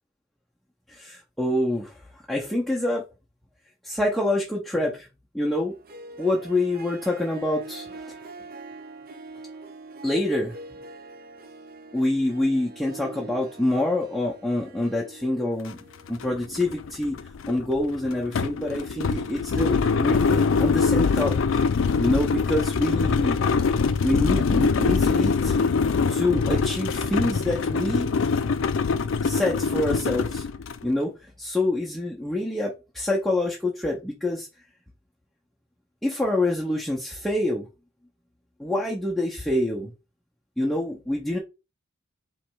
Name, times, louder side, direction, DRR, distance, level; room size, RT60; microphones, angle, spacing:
voice 1, 0.9-2.0 2.3-3.0 3.8-5.1 5.3-5.7 6.2-8.1 10.0-10.6 11.9-15.8 16.1-17.2 17.5-21.6 22.0-23.4 24.0-25.6 26.1-28.1 29.2-30.4 30.8-34.5 36.0-37.7 38.6-39.9 40.6-41.4, left 1 dB, ahead, 0.7 m, -26 dB
Harp, 5.7-16.9, right 3 dB, 45° right, 0.6 m, -44 dB
sound 1, 15.7-15.8 16.1-30.8, left 5 dB, 70° left, 0.4 m, -24 dB
3.2 x 3.1 x 4.6 m
head